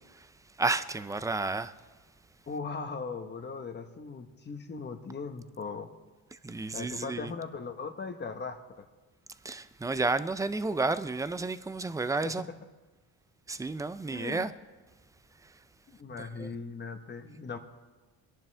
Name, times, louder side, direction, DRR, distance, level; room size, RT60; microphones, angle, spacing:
voice 1, 0.6-1.7 6.4-7.3 9.4-12.5 13.5-14.5 16.4-16.5, right 3 dB, 10° right, 0.4 m, -31 dB
voice 2, 2.5-5.9 6.7-8.9 12.2-12.4 14.1-14.5 15.9-17.6, left 4 dB, 30° left, 1.2 m, -39 dB
25.0 x 11.0 x 3.4 m
cardioid pair, 135°, 37 cm